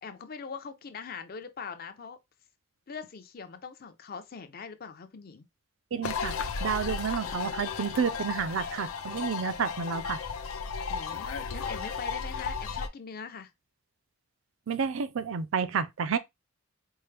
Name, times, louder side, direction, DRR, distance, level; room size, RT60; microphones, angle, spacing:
voice 1, 0.0-2.2 2.9-5.5 10.9-13.5, left 5 dB, 45° left, 0.5 m, -42 dB
voice 2, 5.9-6.3 6.6-10.2 14.7-16.2, right 6 dB, 70° right, 0.4 m, -30 dB
sound 1, 6.0-12.9, left 5 dB, 90° left, 0.5 m, -34 dB
4.5 x 2.0 x 3.3 m
head